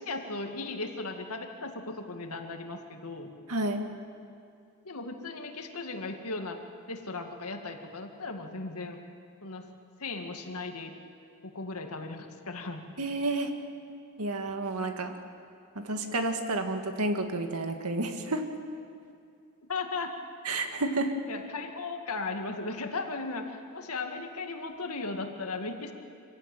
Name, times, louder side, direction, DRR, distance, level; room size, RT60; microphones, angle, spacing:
voice 1, 0.0-3.3 4.8-6.6 6.9-9.0 9.4-9.7 10.0-10.9 11.4-12.9 19.7-20.2 21.3-25.9, left 3 dB, 85° left, 4 dB, 2.1 m, -36 dB
voice 2, 3.5-3.8 13.0-13.5 14.2-15.1 15.8-18.4 20.5-21.1, right 2 dB, 85° right, 5 dB, 1.9 m, -30 dB
25.5 x 16.0 x 9.1 m, 2.4 s
head